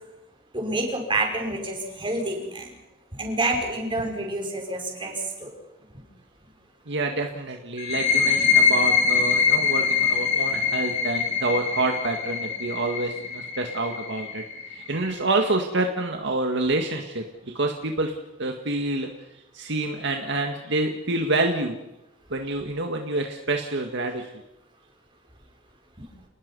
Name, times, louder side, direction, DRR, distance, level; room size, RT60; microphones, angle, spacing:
voice 1, 0.5-2.7 3.1-5.5 26.0-26.1, right 2 dB, 25° right, 1 dB, 5.8 m, -28 dB
voice 2, 6.9-18.1 18.4-19.1 19.5-21.8 22.3-24.3, right 2 dB, 65° right, 3 dB, 2.0 m, -27 dB
sound 1, 7.8-15.2, left 6 dB, 40° left, 3.2 m, -23 dB
29.5 x 20.0 x 5.5 m, 0.92 s
head